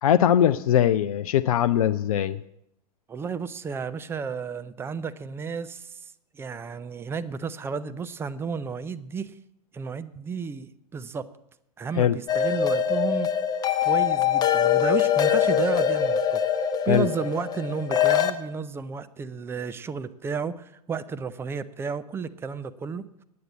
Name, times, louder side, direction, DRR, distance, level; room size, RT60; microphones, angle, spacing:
voice 1, 0.0-2.4 12.0-12.1 16.9-17.1, left 10 dB, 60° left, 10 dB, 0.4 m, -21 dB
voice 2, 3.1-6.0 6.3-9.3 9.7-11.3 11.8-13.3 13.8-16.4 16.9-23.2, right 5 dB, 10° right, 12 dB, 0.4 m, -32 dB
sound 1, 12.3-18.3, left 9 dB, 20° left, 0.8 m, -23 dB
9.4 x 9.0 x 7.4 m, 0.80 s
figure-of-eight pair, 95°, 21 cm